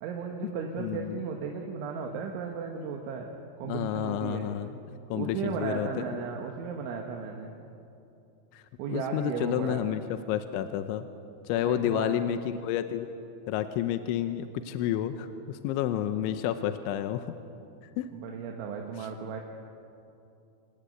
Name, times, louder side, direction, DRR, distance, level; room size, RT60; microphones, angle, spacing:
voice 1, 0.0-3.3 3.6-4.5 5.1-7.5 8.8-9.8 11.5-12.2 18.1-19.4, right 6 dB, 80° right, 1 dB, 3.8 m, -35 dB
voice 2, 0.8-1.2 3.6-4.7 5.1-6.2 8.5-8.6 8.9-10.0 10.3-11.1 11.4-13.2 13.5-17.3 17.8-18.1 19.0-19.1, left 11 dB, 85° left, 9 dB, 3.1 m, -30 dB
27.0 x 16.0 x 9.2 m, 2.7 s
omnidirectional pair, 5.4 m